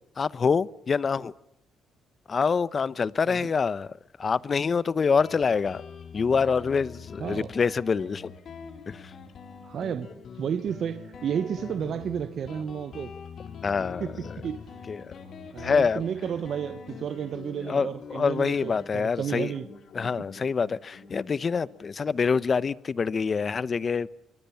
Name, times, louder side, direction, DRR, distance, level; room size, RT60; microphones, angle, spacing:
voice 1, 0.2-1.3 2.3-3.9 4.2-5.8 6.1-8.3 8.9-9.0 13.6-14.4 14.9-15.1 15.6-16.0 17.7-19.5 19.9-24.1, left 5 dB, 40° left, 0.9 m, -26 dB
Guitar, 5.2-22.4, left 6 dB, 60° left, 4.3 m, -44 dB
voice 2, 7.2-7.5 9.6-10.1 10.4-13.1 14.0-14.6 15.5-19.7, right 8 dB, 60° right, 1.1 m, -32 dB
25.0 x 23.5 x 8.6 m
cardioid pair, 90°, 0 cm